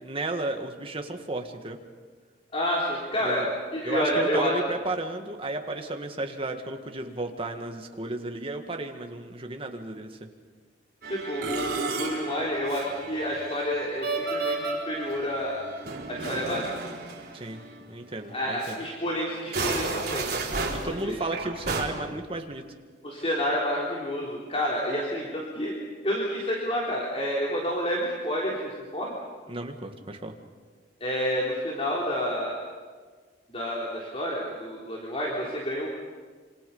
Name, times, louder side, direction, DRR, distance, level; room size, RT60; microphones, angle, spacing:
voice 1, 0.0-1.8 3.2-3.5 3.8-10.2 17.3-17.6 17.9-18.8 20.8-22.6 29.5-30.3, right 2 dB, 30° right, 4 dB, 2.0 m, -33 dB
voice 2, 2.5-3.5 3.7-4.5 11.1-15.6 16.1-17.0 18.3-21.2 23.0-25.7 26.0-29.1 31.0-32.5 33.5-35.9, equal, 35° left, -4 dB, 3.7 m, -29 dB
Musical instrument, 11.0-17.9 18.2-18.3 18.6-18.8 19.4-21.9, right 3 dB, 60° right, 4.2 m, -33 dB
27.0 x 26.5 x 5.6 m, 1.5 s
head